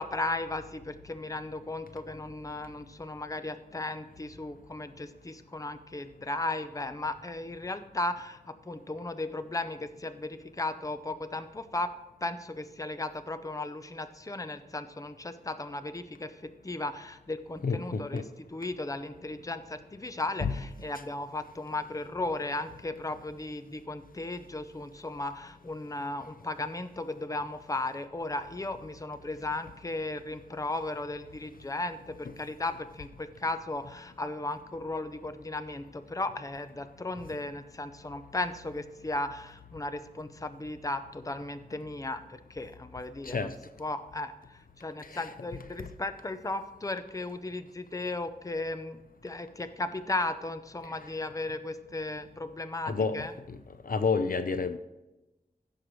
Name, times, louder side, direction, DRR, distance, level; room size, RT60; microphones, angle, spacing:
voice 1, 0.0-11.9 12.2-18.2 18.5-43.5 43.8-53.3, left 2 dB, 20° left, 10 dB, 0.6 m, -36 dB
voice 2, 17.6-18.2 20.4-20.5 43.2-43.5 45.0-45.3 52.9-53.6 53.8-54.8, left 4 dB, 60° left, 10 dB, 0.6 m, -30 dB
16.0 x 6.6 x 3.2 m, 1.0 s
wide cardioid pair, 85°, 16 cm